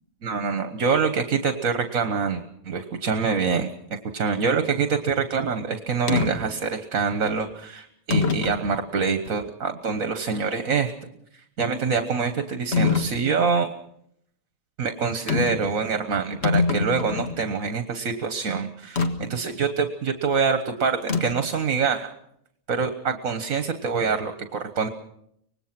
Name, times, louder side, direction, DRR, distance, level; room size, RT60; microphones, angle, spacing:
voice 1, 0.2-3.7 4.1-10.9 11.6-13.7 14.8-22.1 22.7-24.9, right 5 dB, 70° right, 8 dB, 1.7 m, -25 dB
sound 1, 6.1-6.3 7.2-7.4 8.1-8.6 9.3-9.4 12.7-13.1 15.3-15.6 16.0-16.1 16.3-17.4 19.0-19.1 21.1-21.5, left 4 dB, 50° left, 2.0 m, -23 dB
25.0 x 19.5 x 6.0 m, 0.75 s
omnidirectional pair, 1.5 m